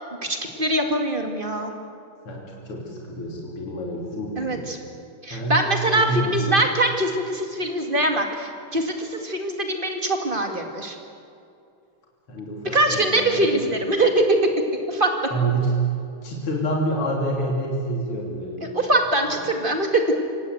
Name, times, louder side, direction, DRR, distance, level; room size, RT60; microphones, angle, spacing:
voice 1, 0.2-1.7 4.4-4.8 5.2-11.0 12.7-14.2 14.9-15.1 18.7-20.0, right 1 dB, 25° right, 3 dB, 2.2 m, -23 dB
voice 2, 2.3-4.7 5.3-5.6 5.9-6.6 12.3-14.0 15.3-15.7 16.2-18.7 19.2-19.4, right 2 dB, 80° left, -2 dB, 3.9 m, -28 dB
27.0 x 17.5 x 8.0 m, 2.5 s
omnidirectional pair, 2.4 m